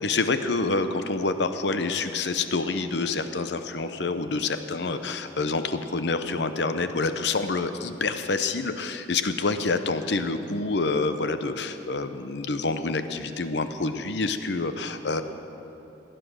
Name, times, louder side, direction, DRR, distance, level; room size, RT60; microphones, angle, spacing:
voice 1, 0.0-15.2, left 3 dB, 65° left, 10 dB, 0.7 m, -27 dB
17.0 x 10.0 x 6.3 m, 3.0 s
head